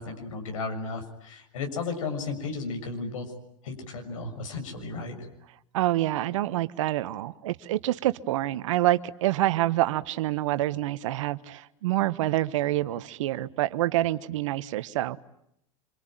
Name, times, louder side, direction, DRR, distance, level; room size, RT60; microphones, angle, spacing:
voice 1, 0.0-3.2 3.6-5.1, left 4 dB, 80° left, 4 dB, 6.8 m, -34 dB
voice 2, 5.7-15.2, right 15 dB, 70° right, 14 dB, 1.2 m, -27 dB
26.5 x 25.0 x 9.1 m, 0.76 s
hypercardioid pair, 100°, 17 cm